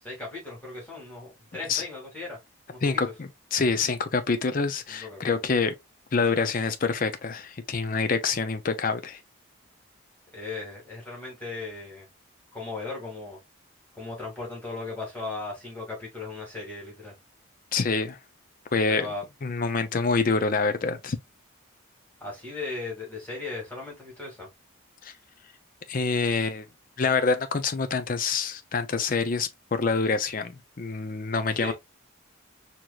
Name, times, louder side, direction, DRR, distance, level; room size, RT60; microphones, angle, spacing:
voice 1, 0.0-2.4 2.7-3.0 4.9-5.4 10.3-12.1 12.5-13.4 14.0-17.1 18.9-19.2 22.2-24.5 31.6-31.7, left 3 dB, 10° left, 2.1 m, -37 dB
voice 2, 2.8-5.7 6.1-9.2 17.7-18.2 18.7-19.1 19.4-21.2 25.0-25.1 25.9-26.7 27.0-31.7, left 4 dB, 40° left, 0.5 m, -26 dB
4.6 x 2.9 x 2.3 m
head